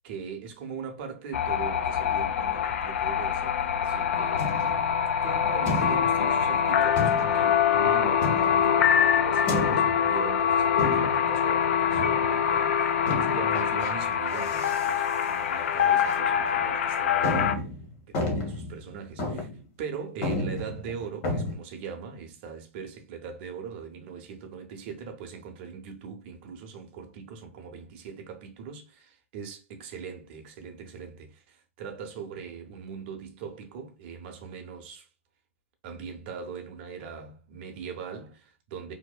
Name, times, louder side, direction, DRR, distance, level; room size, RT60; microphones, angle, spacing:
voice 1, 0.0-4.8 5.2-17.5 18.1-19.5 19.8-35.1 35.8-38.9, right 6 dB, 45° right, 0.6 m, -41 dB
sound 1, 1.3-17.5, left 8 dB, 60° left, 0.3 m, -24 dB
sound 2, 4.4-4.9 5.7-6.3 7.0-7.5 8.2-8.8 9.5-10.1 10.8-11.4 11.9-12.3 13.1-13.9 14.3-14.9 15.2-15.3 16.0-16.1 16.6-16.7 17.2-18.8 19.2-19.6 19.9-20.0 20.2-21.5, left 2 dB, 40° left, 0.9 m, -32 dB
2.7 x 2.0 x 2.3 m
hypercardioid pair, 125°, 8 cm